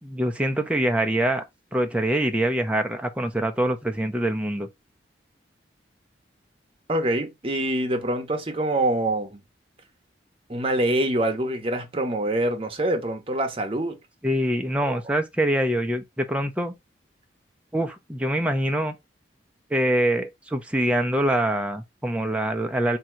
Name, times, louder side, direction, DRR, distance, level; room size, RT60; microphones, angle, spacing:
voice 1, 0.0-1.4 1.7-4.7 14.2-16.7 17.7-19.0 19.7-23.0, right 1 dB, 5° right, 0.6 m, -24 dB
voice 2, 6.9-9.4 10.5-14.0 14.8-15.0, right 1 dB, 30° right, 0.9 m, -25 dB
3.7 x 2.8 x 4.3 m
head